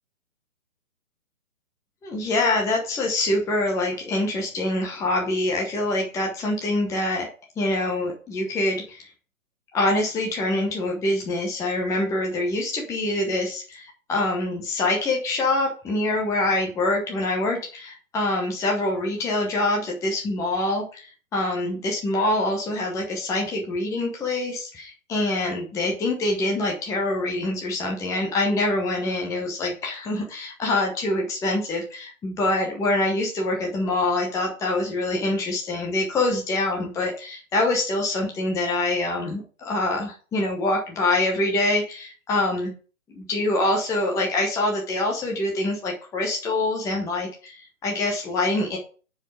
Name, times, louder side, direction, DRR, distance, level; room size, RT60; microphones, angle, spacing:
voice 1, 2.0-7.3 7.6-9.1 9.7-42.7 43.1-48.8, left 2 dB, 5° left, -1 dB, 1.0 m, -25 dB
9.7 x 4.9 x 4.9 m, 0.37 s
figure-of-eight pair, 135°, 41 cm